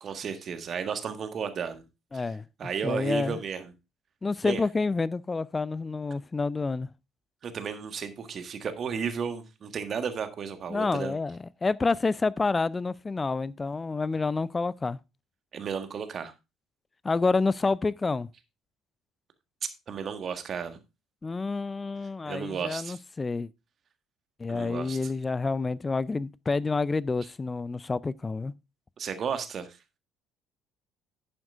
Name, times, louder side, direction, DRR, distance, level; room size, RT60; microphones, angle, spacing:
voice 1, 0.0-1.8 2.1-2.3 2.6-3.7 4.4-4.6 7.4-11.1 15.5-16.3 19.9-20.8 22.3-23.0 24.5-25.1 29.0-29.8, right 6 dB, 40° right, 1.5 m, -33 dB
voice 2, 2.1-2.4 2.8-3.4 4.2-6.9 10.7-15.0 17.0-18.3 21.2-23.5 24.4-28.5, left 3 dB, 20° left, 0.4 m, -28 dB
10.5 x 9.7 x 2.5 m
figure-of-eight pair, 50°, 0 cm